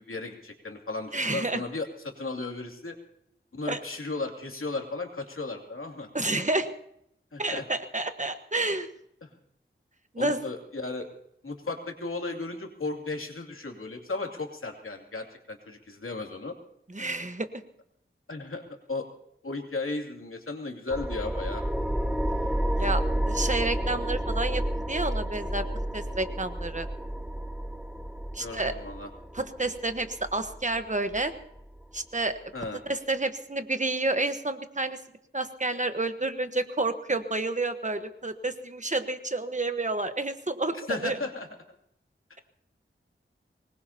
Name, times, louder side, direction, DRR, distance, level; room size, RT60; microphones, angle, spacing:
voice 1, 0.0-1.9 2.2-3.0 3.5-6.1 7.3-7.7 9.2-9.3 10.2-11.1 11.4-16.5 18.3-18.6 18.9-19.1 19.4-21.6 28.4-29.1 32.5-32.8 40.9-41.5, left 3 dB, 80° left, 2 dB, 2.7 m, -35 dB
voice 2, 1.1-1.6 3.7-3.8 6.1-6.7 7.4-8.9 10.1-10.4 16.9-17.5 22.8-25.7 25.9-26.9 28.3-28.7 29.3-31.3 31.9-32.4 32.9-35.0 35.3-41.2, right 2 dB, 35° right, 8 dB, 1.2 m, -29 dB
sound 1, 20.9-32.0, right 1 dB, 5° right, 0.7 m, -31 dB
23.5 x 20.5 x 2.9 m, 0.73 s
wide cardioid pair, 70°, 21 cm